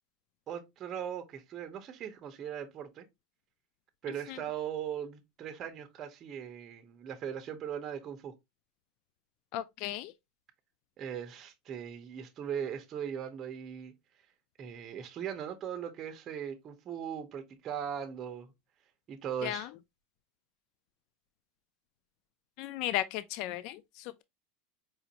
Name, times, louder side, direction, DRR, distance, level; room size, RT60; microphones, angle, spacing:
voice 1, 0.5-3.0 4.0-8.3 11.0-13.9 14.6-18.5 19.1-19.7, right 8 dB, 30° right, 0.7 m, -39 dB
voice 2, 9.5-10.1 19.4-19.7 22.6-24.2, left 14 dB, 50° left, 0.3 m, -35 dB
4.9 x 2.5 x 2.8 m
supercardioid pair, 155°, 0 cm